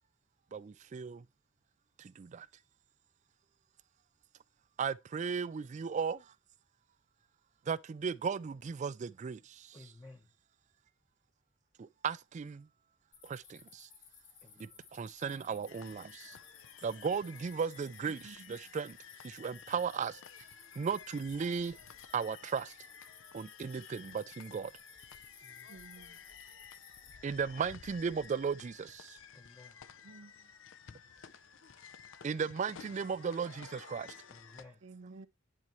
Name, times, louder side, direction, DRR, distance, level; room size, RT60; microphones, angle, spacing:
voice 1, 0.5-1.2 2.0-2.5 4.8-6.2 7.7-9.8 11.8-12.7 13.2-13.9 14.6-16.4 16.8-19.0 19.2-20.2 20.8-21.8 22.1-22.7 23.3-24.7 27.2-29.2 32.2-34.1, right 6 dB, 35° right, 0.3 m, -36 dB
voice 2, 9.7-10.3 14.4-14.8 25.4-25.7 29.3-29.8 34.3-34.8, left 2 dB, 20° left, 0.8 m, -55 dB
sound 1, 13.1-27.1, left 6 dB, 45° left, 1.9 m, -59 dB
sound 2, 15.7-34.6, left 8 dB, 70° left, 0.5 m, -54 dB
voice 3, 18.1-18.5 25.7-26.2 30.0-30.3 34.8-35.3, right 3 dB, 80° right, 0.6 m, -52 dB
9.7 x 4.5 x 3.0 m
head